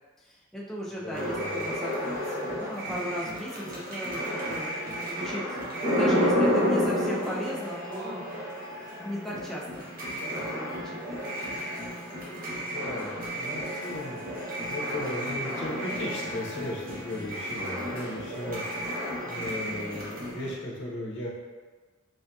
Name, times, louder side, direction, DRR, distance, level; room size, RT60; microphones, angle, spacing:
voice 1, 0.2-5.6 5.9-8.2 9.0-9.9 10.2-11.1, equal, ahead, -6 dB, 0.3 m, -36 dB
voice 2, 1.0-1.6 12.5-14.2 14.6-18.6 19.3-21.3, left 1 dB, 65° left, -4 dB, 0.7 m, -36 dB
sound 1, 1.1-20.5, equal, 45° right, 0.8 m, -31 dB
3.3 x 2.7 x 2.2 m, 1.4 s
head